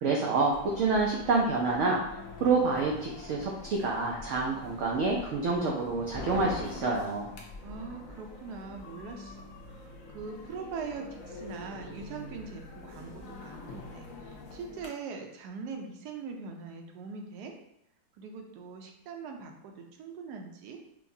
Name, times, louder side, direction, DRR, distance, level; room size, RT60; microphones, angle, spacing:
voice 1, 0.0-2.0 2.4-7.3, right 3 dB, 70° right, -1 dB, 0.7 m, -27 dB
sound 1, 0.5-14.9, left 2 dB, 65° left, 1.0 m, -45 dB
voice 2, 7.6-17.5 18.2-20.8, right 5 dB, 90° right, 3 dB, 1.2 m, -42 dB
4.6 x 2.2 x 2.6 m, 0.81 s
omnidirectional pair, 1.7 m